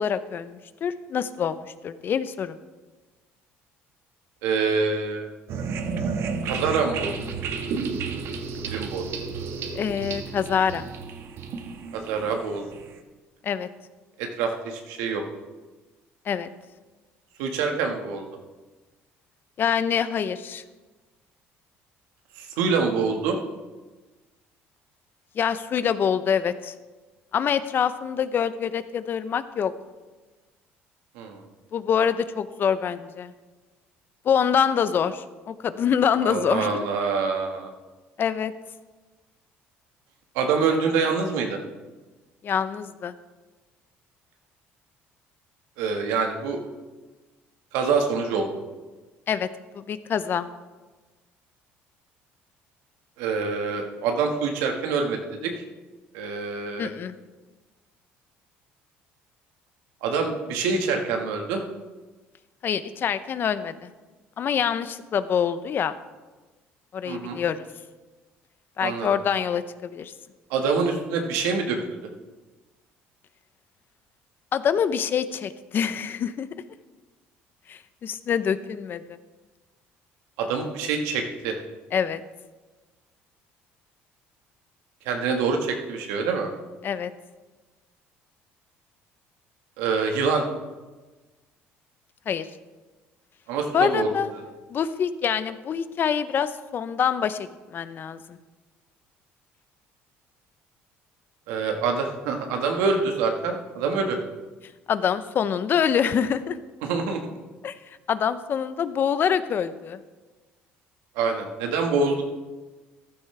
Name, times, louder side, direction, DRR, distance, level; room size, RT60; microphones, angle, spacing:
voice 1, 0.0-2.6 9.7-10.9 13.4-13.7 16.3-16.5 19.6-20.6 25.3-26.7 27.3-29.7 31.7-33.3 34.2-36.8 38.2-38.5 42.4-43.1 49.3-49.5 49.7-50.5 56.8-57.2 62.6-63.9 64.4-66.0 66.9-67.6 68.8-70.1 74.5-76.5 77.7-79.2 81.9-82.2 86.8-87.1 92.3-92.5 93.7-94.3 94.7-98.4 104.9-106.6 107.6-107.8 108.1-110.0, left 7 dB, 45° left, 13 dB, 0.7 m, -25 dB
voice 2, 4.4-5.3 6.4-7.1 8.7-9.1 11.9-12.7 14.2-15.2 17.4-18.3 22.4-23.4 31.1-31.4 36.2-37.7 40.3-41.6 45.8-46.6 47.7-48.5 53.2-55.5 56.1-56.9 60.0-61.6 67.0-67.4 68.8-69.1 70.5-71.8 80.4-81.6 85.0-86.5 89.8-90.4 93.5-94.1 101.5-104.2 106.8-107.2 111.1-112.2, right 5 dB, 90° right, 3 dB, 1.6 m, -25 dB
sound 1, 5.5-13.0, right 5 dB, 65° right, 1.3 m, -32 dB
14.5 x 12.0 x 3.3 m, 1.3 s
cardioid pair, 95°, 5 cm